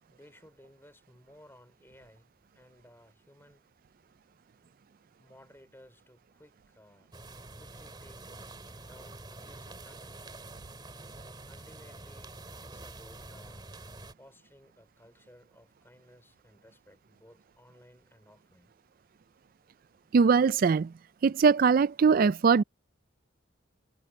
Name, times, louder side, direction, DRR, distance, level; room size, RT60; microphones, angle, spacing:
voice 1, 0.1-3.6 5.2-7.1 7.5-8.3 8.8-10.3 11.5-13.7 14.1-18.7, left 1 dB, 10° left, 4.7 m, -58 dB
sound 1, 7.1-14.1, right 2 dB, 25° right, 2.4 m, -47 dB
voice 2, 20.1-20.9 21.2-22.6, right 5 dB, 45° right, 0.3 m, -21 dB
head